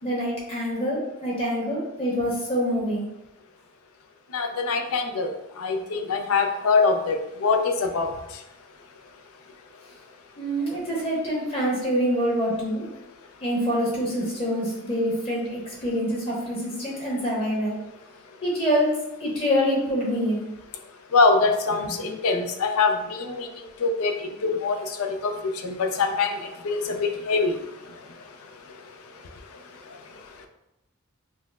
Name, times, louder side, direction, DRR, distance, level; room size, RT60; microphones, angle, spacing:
voice 1, 0.0-3.1 10.4-12.9 13.4-17.8 18.4-20.4, equal, 25° left, -5 dB, 1.0 m, -26 dB
voice 2, 4.3-5.3 5.6-7.2 7.4-8.1 21.1-23.5 23.8-24.1 24.4-26.3 26.6-27.0 27.3-27.5, left 4 dB, 85° left, 5 dB, 0.5 m, -23 dB
5.3 x 2.0 x 2.4 m, 0.90 s
head